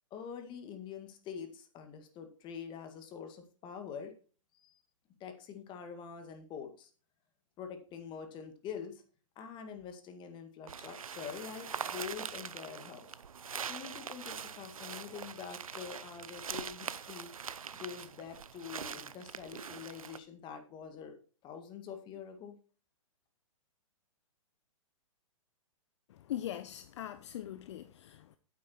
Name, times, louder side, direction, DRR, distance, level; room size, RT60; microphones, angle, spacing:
voice 1, 0.1-4.1 4.5-4.8 5.2-6.9 7.6-9.0 9.4-13.2 13.7-17.3 17.7-21.2 21.4-22.5, left 7 dB, 25° left, 1.9 m, -45 dB
sound 1, 10.7-20.2, right 7 dB, 85° right, 0.7 m, -43 dB
voice 2, 26.1-28.4, left 11 dB, 55° left, 0.7 m, -41 dB
8.9 x 8.5 x 4.4 m
hypercardioid pair, 125°, 17 cm